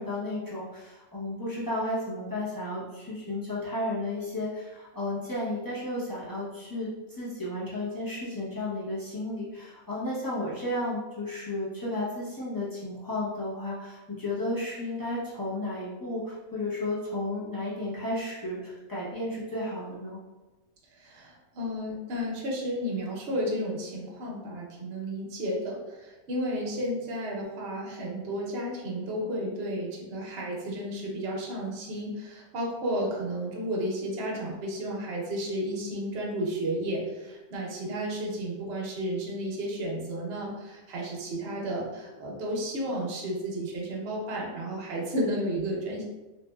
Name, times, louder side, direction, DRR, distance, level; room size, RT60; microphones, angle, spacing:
voice 1, 0.0-20.2, left 1 dB, 20° left, -10 dB, 0.6 m, -33 dB
voice 2, 21.0-46.0, equal, 55° right, -3 dB, 0.9 m, -32 dB
2.9 x 2.8 x 2.2 m, 1.1 s
omnidirectional pair, 1.5 m